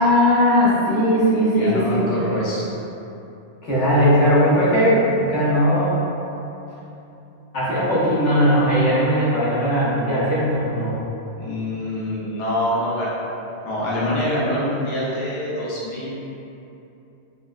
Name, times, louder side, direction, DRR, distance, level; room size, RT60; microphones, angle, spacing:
voice 1, 0.0-2.1 3.6-6.0 7.5-11.0, equal, 80° left, -10 dB, 1.3 m, -18 dB
voice 2, 1.5-2.7 11.4-13.4 13.6-16.1, left 1 dB, 60° left, -8 dB, 1.0 m, -25 dB
5.1 x 2.1 x 2.3 m, 2.9 s
omnidirectional pair, 1.2 m